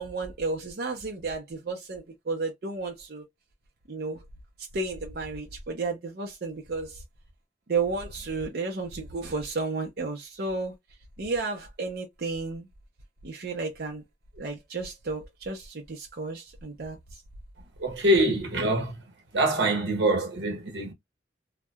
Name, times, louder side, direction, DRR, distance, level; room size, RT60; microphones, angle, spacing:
voice 1, 0.0-3.2 3.9-4.2 4.7-7.0 7.7-10.7 11.2-12.7 13.2-14.0 14.4-17.0, right 3 dB, 60° right, 0.6 m, -32 dB
voice 2, 17.8-18.9 19.3-20.9, right 1 dB, 90° right, 1.0 m, -24 dB
2.7 x 2.1 x 2.2 m
head